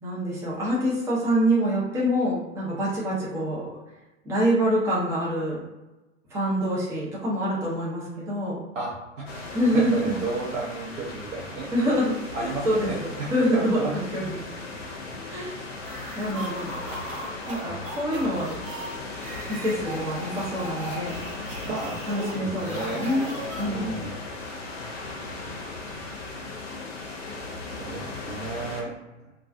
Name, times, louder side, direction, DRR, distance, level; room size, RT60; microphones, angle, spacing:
voice 1, 0.0-3.7 4.2-5.6 6.3-8.6 9.5-10.2 11.7-12.1 12.4-14.3 15.3-15.6 16.1-16.6 17.5-18.5 19.5-21.2 22.1-23.3 23.6-23.9, equal, 10° right, -6 dB, 0.4 m, -26 dB
voice 2, 8.7-9.2 9.7-11.7 12.3-13.9 21.6-23.1 23.7-24.2 27.8-28.9, right 3 dB, 65° right, -6 dB, 0.7 m, -33 dB
sound 1, 9.3-28.8, left 3 dB, 55° left, 0.7 m, -37 dB
sound 2, 15.8-24.1, right 1 dB, 30° right, 1.0 m, -38 dB
2.3 x 2.2 x 2.4 m, 1.0 s
figure-of-eight pair, 100°, 39 cm